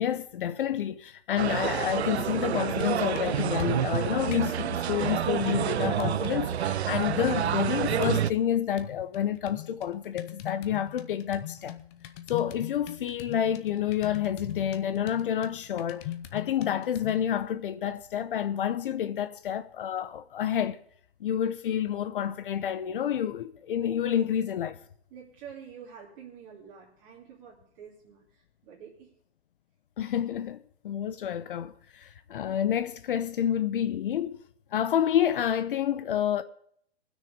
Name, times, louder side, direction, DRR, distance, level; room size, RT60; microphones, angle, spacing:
voice 1, 0.0-11.8 12.3-20.8 21.2-24.8 30.0-34.4 34.7-36.4, left 10 dB, 55° left, 0.8 m, -29 dB
sound 1, 1.4-8.3, right 10 dB, 80° right, 0.6 m, -28 dB
sound 2, 2.6-4.5 5.0-6.6 7.0-8.5 8.8-17.3, left 12 dB, 25° left, 0.7 m, -41 dB
voice 2, 25.1-29.2, right 7 dB, 35° right, 2.6 m, -48 dB
19.0 x 6.5 x 5.2 m
hypercardioid pair, 145°, 32 cm